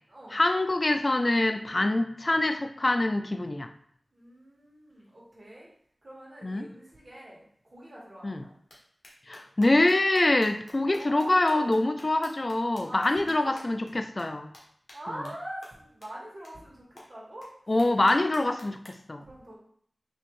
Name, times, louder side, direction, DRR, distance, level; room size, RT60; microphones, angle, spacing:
voice 1, 0.3-3.7 6.4-6.7 8.2-8.4 9.3-14.5 17.7-19.2, left 2 dB, 45° left, 7 dB, 0.3 m, -25 dB
voice 2, 4.1-5.7 6.0-8.5 10.9-11.9 12.8-13.6 14.9-17.8 19.2-19.5, right 1 dB, 55° right, -6 dB, 1.8 m, -43 dB
sound 1, 8.7-8.8 9.0-13.9 14.2-14.3 14.5-14.6 14.9-15.0 15.2-15.3 15.6-15.7 16.0-16.1 16.4-16.5 17.0-17.1 17.4-17.5 17.8-18.9, left 1 dB, 80° left, 1.1 m, -49 dB
4.2 x 3.2 x 3.1 m, 0.64 s
wide cardioid pair, 55°, 0 cm